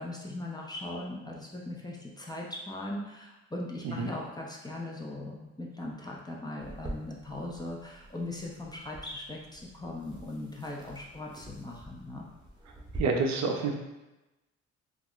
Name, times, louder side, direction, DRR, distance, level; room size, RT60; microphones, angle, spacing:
voice 1, 0.0-12.3, left 1 dB, 15° left, -2 dB, 0.4 m, -39 dB
sound 1, 6.6-13.0, right 1 dB, 15° right, 0.7 m, -46 dB
voice 2, 13.0-13.7, right 4 dB, 65° right, 3 dB, 0.5 m, -28 dB
2.3 x 2.0 x 3.7 m, 1.0 s
cardioid pair, 90°, 30 cm